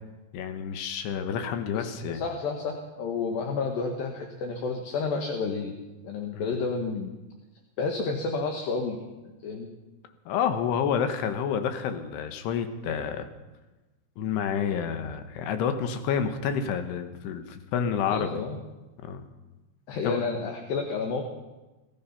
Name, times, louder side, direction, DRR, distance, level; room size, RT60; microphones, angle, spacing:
voice 1, 0.3-2.2 6.3-6.5 10.3-13.3 14.2-18.4 19.0-19.2 20.0-20.2, left 7 dB, 90° left, 8 dB, 3.1 m, -29 dB
voice 2, 1.7-5.8 6.0-7.1 7.8-9.0 9.2-9.7 18.1-18.6 19.9-21.3, left 4 dB, 70° left, 3 dB, 2.7 m, -31 dB
18.5 x 12.5 x 5.6 m, 1.1 s
omnidirectional pair, 4.7 m